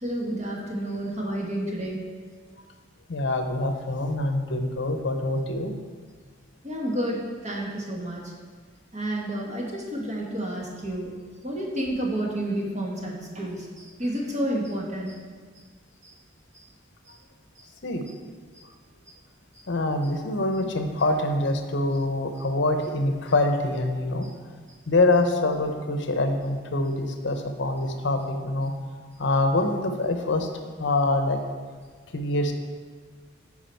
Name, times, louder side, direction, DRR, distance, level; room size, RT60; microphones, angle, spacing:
voice 1, 0.0-2.0 6.6-8.2 8.9-11.2 11.4-15.1 16.0-16.1 16.5-16.6 24.2-24.3, right 1 dB, 35° right, -2 dB, 1.5 m, -30 dB
voice 2, 3.1-5.8 17.8-18.0 19.7-24.3 24.9-28.7 29.2-30.5 30.8-31.4 32.1-32.5, left 2 dB, 65° left, 5 dB, 0.8 m, -25 dB
10.5 x 4.8 x 4.4 m, 1.5 s
head